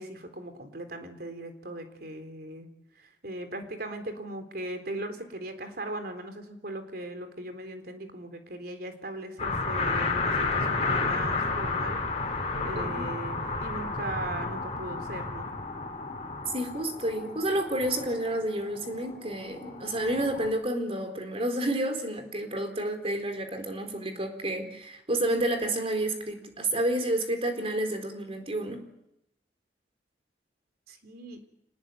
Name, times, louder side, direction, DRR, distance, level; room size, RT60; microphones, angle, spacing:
voice 1, 0.0-2.7 3.0-15.5 30.9-31.4, right 1 dB, 60° right, 8 dB, 3.9 m, -39 dB
sound 1, 9.4-20.5, left 3 dB, 35° left, 4.2 m, -32 dB
voice 2, 12.5-13.0 16.5-28.8, right 1 dB, 35° right, 6 dB, 4.2 m, -30 dB
27.0 x 20.0 x 9.2 m, 0.81 s
head